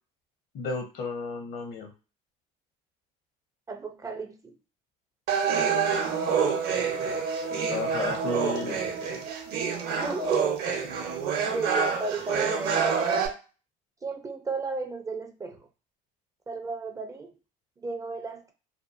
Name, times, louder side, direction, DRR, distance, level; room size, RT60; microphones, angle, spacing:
voice 1, 0.5-1.9 7.7-8.9, left 4 dB, 60° left, 6 dB, 0.7 m, -33 dB
voice 2, 3.7-4.6 9.0-10.6 11.4-12.9 14.0-15.7 16.5-17.3 17.8-18.5, right 3 dB, 20° right, 5 dB, 0.4 m, -34 dB
sound 1, 5.3-13.3, right 6 dB, 60° right, 0.7 m, -27 dB
2.6 x 2.3 x 2.4 m, 0.34 s
supercardioid pair, 95°, 19 cm